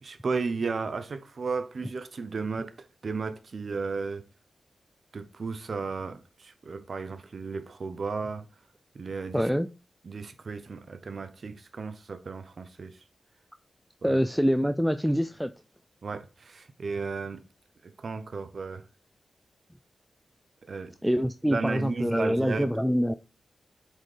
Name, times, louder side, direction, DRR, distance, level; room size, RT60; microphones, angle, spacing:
voice 1, 0.0-4.3 5.1-8.5 8.9-9.4 10.0-13.0 14.0-14.2 16.0-17.4 17.8-18.8 20.6-20.9 21.5-22.7, right 4 dB, 55° right, 0.7 m, -34 dB
voice 2, 9.3-9.7 14.0-15.5 21.0-23.1, equal, ahead, 0.3 m, -25 dB
8.0 x 4.2 x 3.3 m
wide cardioid pair, 85°, 0 cm